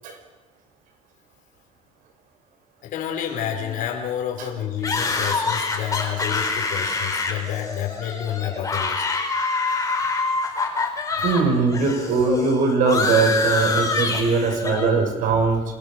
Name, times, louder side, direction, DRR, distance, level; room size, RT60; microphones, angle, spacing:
voice 1, 2.8-9.0 11.2-11.3, left 9 dB, 75° left, 2 dB, 4.6 m, -29 dB
voice 2, 3.4-3.7 4.4-4.5 11.2-15.6, right 4 dB, 75° right, 5 dB, 5.9 m, -21 dB
sound 1, 4.8-11.4 11.7-14.9, left 3 dB, 25° left, 4.4 m, -25 dB
27.5 x 21.0 x 6.4 m, 1.1 s
cardioid pair, 125°, 14 cm